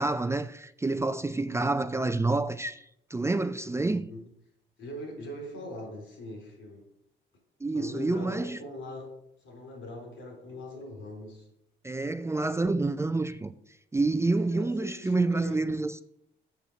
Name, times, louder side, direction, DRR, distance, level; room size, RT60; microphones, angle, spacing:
voice 1, 0.0-2.8 3.1-4.1 7.6-8.6 11.8-13.5 13.9-16.0, right 2 dB, 15° right, 0.4 m, -28 dB
voice 2, 3.7-4.3 4.8-6.8 7.7-11.5 14.4-15.7, left 1 dB, 80° left, 3.9 m, -42 dB
7.1 x 6.0 x 6.4 m
cardioid pair, 90°, 20 cm